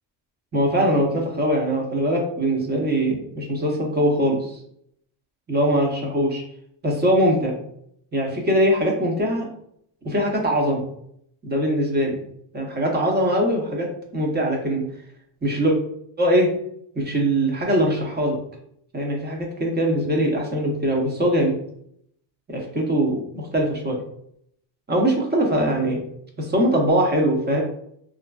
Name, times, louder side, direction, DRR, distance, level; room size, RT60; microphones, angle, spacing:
voice 1, 0.5-4.6 5.5-6.4 6.8-7.6 8.1-9.5 10.0-10.8 11.4-12.2 12.5-13.9 14.1-14.8 15.4-15.8 16.2-16.5 16.9-18.4 18.9-21.5 22.5-24.0 24.9-26.0 26.4-27.6, right 1 dB, 20° right, 0 dB, 0.7 m, -22 dB
2.8 x 2.6 x 2.3 m, 0.69 s
cardioid pair, 115°, 47 cm